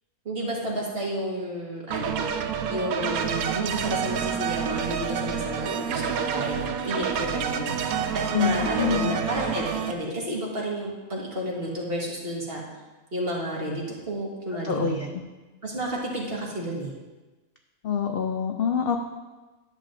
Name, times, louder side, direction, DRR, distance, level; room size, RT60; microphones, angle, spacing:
voice 1, 0.2-12.6 13.1-15.1 15.6-16.9, right 1 dB, 45° right, -3 dB, 1.6 m, -31 dB
sound 1, 1.9-9.9, right 7 dB, 80° right, 1.0 m, -28 dB
voice 2, 8.3-9.2 14.6-15.1 17.8-19.0, left 7 dB, 70° left, 4 dB, 0.5 m, -26 dB
10.5 x 7.4 x 2.6 m, 1.2 s
omnidirectional pair, 1.5 m